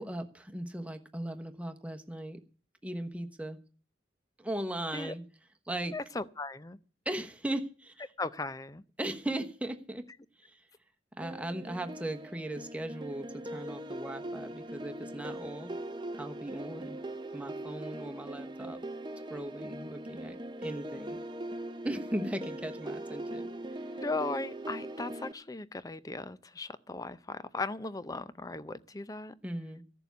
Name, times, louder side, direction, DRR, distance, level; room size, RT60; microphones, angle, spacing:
voice 1, 0.0-2.4 2.8-3.6 4.4-5.2 5.7-5.9 7.0-8.1 9.0-10.1 10.4-10.6 11.2-15.7 16.2-17.0 17.3-18.8 19.3-21.2 21.8-23.5 29.4-29.8, right 1 dB, 5° right, 1.1 m, -38 dB
voice 2, 5.9-6.8 8.2-8.8 23.9-29.3, left 3 dB, 20° left, 0.6 m, -37 dB
sound 1, 11.2-25.3, right 1 dB, 25° right, 0.7 m, -41 dB
15.0 x 7.0 x 8.2 m
head